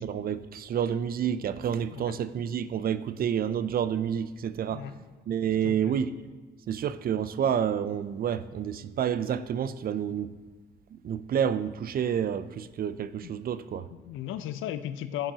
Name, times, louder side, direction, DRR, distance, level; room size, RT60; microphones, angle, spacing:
voice 1, 0.0-4.9 5.3-6.2 6.7-10.3 10.9-13.9, right 8 dB, 50° right, 14 dB, 0.4 m, -29 dB
voice 2, 5.6-6.0 13.2-13.3 13.7-15.3, left 11 dB, 85° left, 11 dB, 0.5 m, -36 dB
11.5 x 7.7 x 2.8 m, 1.4 s
cardioid pair, 90°, 20 cm